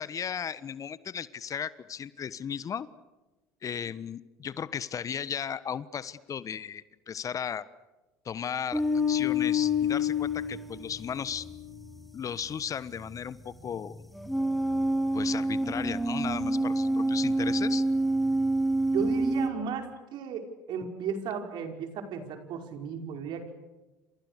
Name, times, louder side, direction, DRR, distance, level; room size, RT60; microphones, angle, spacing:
voice 1, 0.0-2.9 3.6-7.6 8.2-8.8 9.1-11.4 12.1-13.9 15.1-17.8, left 8 dB, 40° left, 17 dB, 1.3 m, -35 dB
sound 1, 8.7-19.5, equal, ahead, 4.7 m, -28 dB
voice 2, 18.9-23.5, right 6 dB, 60° right, 6 dB, 5.2 m, -35 dB
30.0 x 27.5 x 6.7 m, 1.1 s
hypercardioid pair, 70°, 9 cm